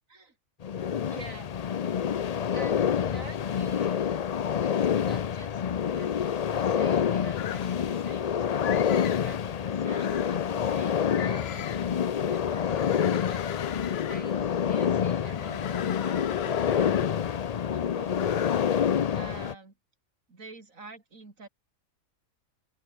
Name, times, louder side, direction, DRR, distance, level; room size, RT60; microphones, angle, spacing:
sound 1, 0.6-19.5, left 8 dB, 75° left, 0.3 m, -27 dB
voice 1, 1.0-1.5 2.5-4.1 4.6-5.6 5.9-6.2 6.5-17.0 17.7-18.5 19.1-19.7 20.3-21.5, right 3 dB, 70° right, 4.0 m, -48 dB
sound 2, 7.3-8.1 8.6-9.3 9.8-10.5 11.1-12.0 12.6-14.5 15.3-17.4 18.1-18.9, left 10 dB, 55° left, 0.8 m, -38 dB
open air
omnidirectional pair, 1.4 m